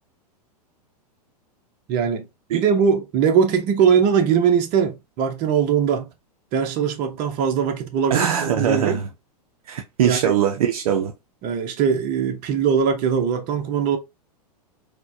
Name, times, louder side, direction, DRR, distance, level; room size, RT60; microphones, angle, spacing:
voice 1, 1.9-2.2 2.5-6.1 6.5-9.0 10.0-10.3 11.4-14.0, right 7 dB, 40° right, 0.8 m, -21 dB
voice 2, 8.1-9.1 9.7-11.1, right 8 dB, 65° right, 0.6 m, -21 dB
4.2 x 2.3 x 2.6 m
hypercardioid pair, 100°, 20 cm